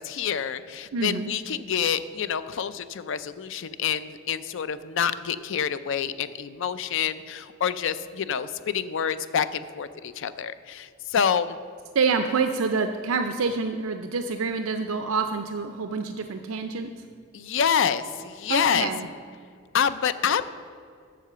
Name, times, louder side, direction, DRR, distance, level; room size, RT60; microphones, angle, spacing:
voice 1, 0.0-11.6 17.3-18.9 19.7-20.4, left 7 dB, 65° left, 13 dB, 0.4 m, -27 dB
voice 2, 0.9-1.3 11.9-16.9 18.5-19.1, right 4 dB, 85° right, 7 dB, 0.5 m, -27 dB
7.7 x 6.7 x 6.7 m, 2.1 s
head